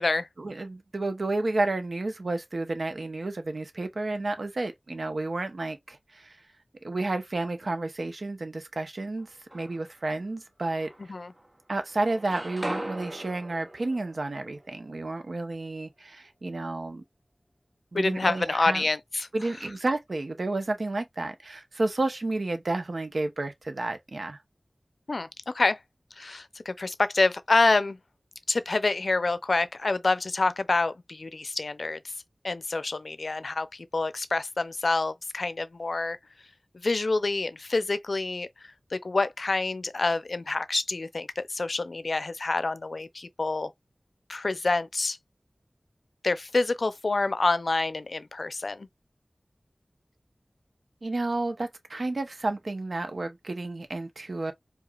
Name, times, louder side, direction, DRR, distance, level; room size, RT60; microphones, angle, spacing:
voice 1, 0.4-6.4 6.8-10.9 11.7-17.0 17.9-18.8 19.3-24.4 51.0-54.5, right 2 dB, 80° right, 0.7 m, -31 dB
sound 1, 9.2-10.0 10.6-11.6 11.9-15.8, right 1 dB, 35° right, 0.6 m, -40 dB
voice 2, 17.9-19.3 25.1-25.8 26.2-28.0 28.5-32.0 32.4-36.2 36.8-43.7 44.3-45.2 46.2-48.9, left 3 dB, 75° left, 0.4 m, -27 dB
4.9 x 2.3 x 2.3 m
wide cardioid pair, 60°, 0 cm